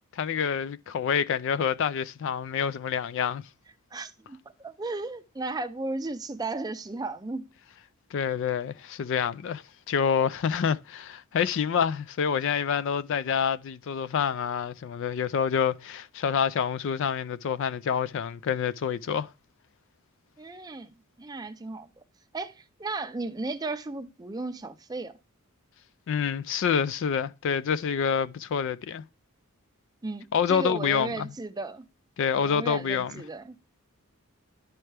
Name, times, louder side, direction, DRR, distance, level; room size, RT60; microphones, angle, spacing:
voice 1, 0.1-3.4 8.1-19.3 26.1-29.0 30.3-31.3 32.2-33.1, left 7 dB, 60° left, 0.3 m, -27 dB
voice 2, 3.9-7.5 20.4-21.9 22.3-25.1 30.0-31.9 32.4-33.6, right 3 dB, 15° right, 0.5 m, -35 dB
11.0 x 4.5 x 3.3 m
head